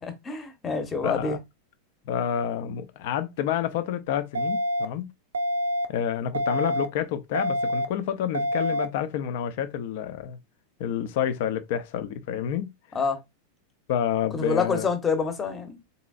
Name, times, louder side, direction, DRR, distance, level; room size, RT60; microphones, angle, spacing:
voice 1, 0.0-1.4 12.9-13.2 14.3-15.8, left 5 dB, 20° left, 1.1 m, -27 dB
voice 2, 1.0-1.4 2.0-5.1 5.9-10.4 10.8-12.7 13.9-14.9, left 9 dB, 50° left, 0.7 m, -28 dB
sound 1, 4.3-4.8 5.3-5.8 6.3-6.8 7.3-7.8 8.3-8.8, equal, 70° right, 0.5 m, -26 dB
4.1 x 3.8 x 2.5 m
figure-of-eight pair, 90°, 0 cm